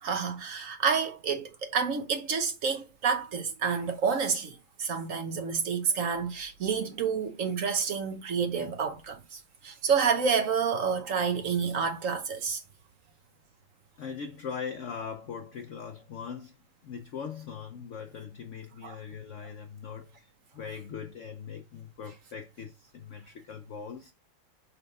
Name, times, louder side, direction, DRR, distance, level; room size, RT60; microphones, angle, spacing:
voice 1, 0.0-12.6 18.8-19.0, right 6 dB, 50° right, 1.1 m, -29 dB
voice 2, 14.0-16.6 16.8-24.1, left 6 dB, 90° left, 0.6 m, -40 dB
5.6 x 3.4 x 5.3 m
omnidirectional pair, 2.1 m